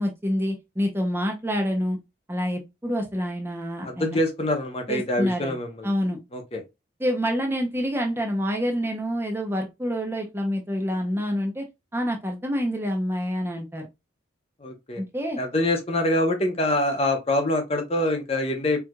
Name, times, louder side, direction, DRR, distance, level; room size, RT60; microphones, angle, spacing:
voice 1, 0.0-2.0 2.3-4.2 4.9-5.5 5.8-6.2 7.0-11.6 11.9-13.9 15.0-15.4, equal, 10° right, 0.6 m, -27 dB
voice 2, 3.8-5.9 6.3-6.6 14.6-15.0 15.4-18.8, left 1 dB, 30° left, 0.7 m, -25 dB
4.5 x 2.4 x 2.2 m
head